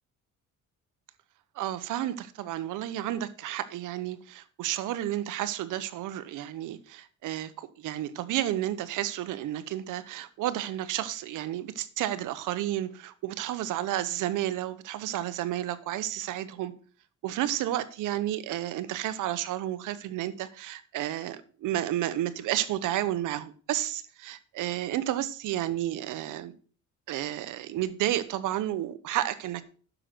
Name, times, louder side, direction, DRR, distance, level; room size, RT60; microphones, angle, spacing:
voice 1, 1.6-16.7 17.2-26.5 27.1-29.6, right 13 dB, 85° right, 1.0 m, -31 dB
10.0 x 6.5 x 6.0 m
cardioid pair, 90°, 30 cm